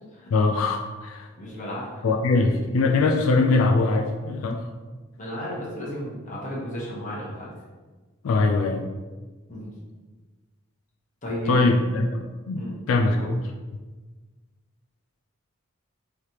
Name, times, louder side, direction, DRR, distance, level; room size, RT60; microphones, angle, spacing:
voice 1, 0.3-1.3 2.0-4.7 8.2-8.9 11.5-13.4, left 3 dB, 70° left, 4 dB, 0.4 m, -22 dB
voice 2, 1.3-2.0 5.2-7.5 9.5-9.7 11.2-11.6 12.5-12.8 13.1-13.3, equal, 35° left, -5 dB, 1.1 m, -34 dB
4.8 x 3.2 x 2.9 m, 1.3 s
head